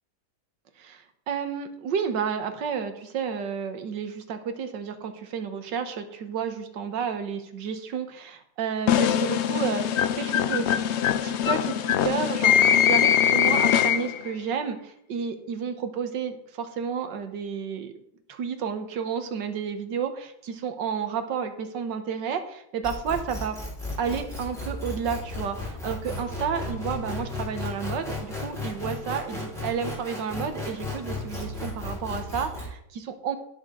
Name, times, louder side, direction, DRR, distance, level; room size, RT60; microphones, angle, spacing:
voice 1, 0.8-10.7 11.2-17.9 18.3-23.6 24.0-33.4, right 6 dB, 80° right, 8 dB, 1.8 m, -31 dB
sound 1, 8.9-14.3, left 9 dB, 80° left, 0.6 m, -22 dB
sound 2, 22.8-32.7, left 2 dB, ahead, 4.2 m, -34 dB
16.5 x 6.6 x 3.8 m, 0.75 s
omnidirectional pair, 1.9 m